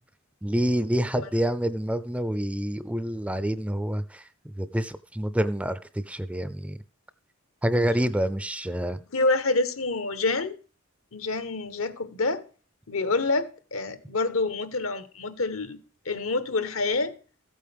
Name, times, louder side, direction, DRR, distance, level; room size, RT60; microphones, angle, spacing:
voice 1, 0.4-6.8 7.6-9.0, right 1 dB, 5° right, 0.5 m, -27 dB
voice 2, 9.1-10.6 11.1-12.5 12.9-15.8 16.0-17.2, left 3 dB, 80° left, 1.2 m, -27 dB
14.5 x 8.5 x 3.5 m
head